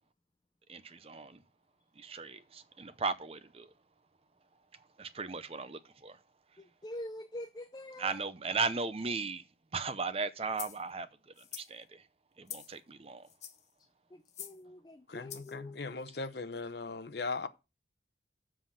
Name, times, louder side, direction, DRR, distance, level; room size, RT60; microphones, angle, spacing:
voice 1, 0.7-1.4 2.0-3.7 4.7-6.2 8.0-9.5 9.7-12.1 12.4-13.3, right 4 dB, 30° right, 0.6 m, -37 dB
voice 2, 6.6-8.2 14.1-15.8, left 1 dB, 20° left, 0.4 m, -45 dB
sound 1, 10.5-10.8 11.4-11.7 12.5-12.8 13.3-13.7 14.3-14.6 15.3-15.5, left 9 dB, 35° left, 1.2 m, -45 dB
voice 3, 15.1-17.5, left 3 dB, 55° left, 0.7 m, -38 dB
7.5 x 5.6 x 7.2 m
head